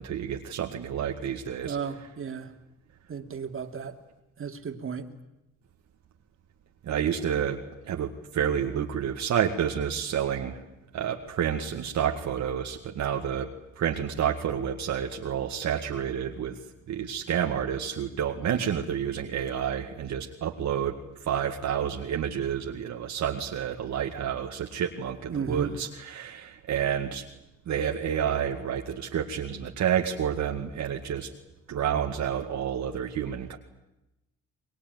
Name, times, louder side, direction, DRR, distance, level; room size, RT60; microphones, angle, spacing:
voice 1, 0.0-1.8 6.8-7.6 7.9-10.6 10.9-13.5 13.8-16.6 16.9-21.0 21.2-27.3 27.7-31.3 31.7-33.6, right 8 dB, 65° right, 2 dB, 2.1 m, -29 dB
voice 2, 1.6-2.5 3.1-4.0 4.4-5.1 25.3-25.7, right 6 dB, 45° right, 5 dB, 2.7 m, -34 dB
24.5 x 21.0 x 9.5 m, 0.93 s
cardioid pair, 90°, 30 cm